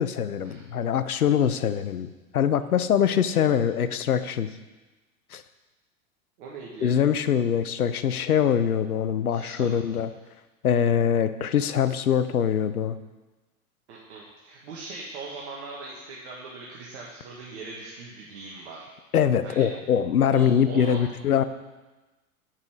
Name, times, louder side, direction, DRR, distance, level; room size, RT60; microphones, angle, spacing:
voice 1, 0.0-4.5 5.3-5.4 6.8-10.1 10.6-13.0 19.1-21.4, left 8 dB, 80° left, 12 dB, 0.6 m, -23 dB
voice 2, 6.4-6.9 9.3-9.8 13.9-18.9 19.4-19.7 20.3-21.1, right 3 dB, 50° right, -4 dB, 1.6 m, -40 dB
7.5 x 5.7 x 4.9 m, 1.2 s
figure-of-eight pair, 90°, 43 cm